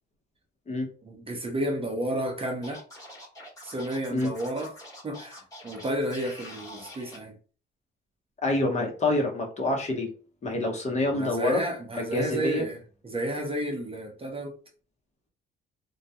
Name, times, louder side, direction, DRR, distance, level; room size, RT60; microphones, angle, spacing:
voice 1, 1.0-2.8 3.6-4.7 5.0-7.3 11.1-12.8 13.0-14.6, right 1 dB, 30° right, 0.7 m, -31 dB
Scratching (performance technique), 2.6-7.2, left 1 dB, 15° left, 1.2 m, -45 dB
voice 2, 8.4-10.1 10.4-11.6 12.0-12.7, left 2 dB, 35° left, 0.8 m, -27 dB
2.2 x 2.1 x 2.7 m
cardioid pair, 90°, 20 cm